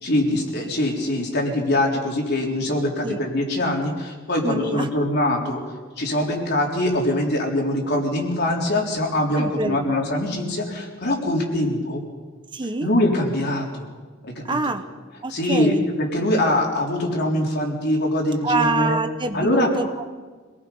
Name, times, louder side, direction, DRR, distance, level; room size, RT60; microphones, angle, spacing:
voice 1, 0.0-5.6 6.0-12.0 12.8-13.9 14.2-14.6 15.3-19.0 19.3-19.7, left 1 dB, 55° left, 0 dB, 3.9 m, -23 dB
voice 2, 4.4-4.9 9.4-9.9 12.5-12.9 14.4-14.8 15.2-15.8 18.4-20.0, right 2 dB, 25° right, 8 dB, 0.9 m, -25 dB
26.0 x 18.5 x 5.5 m, 1.4 s
head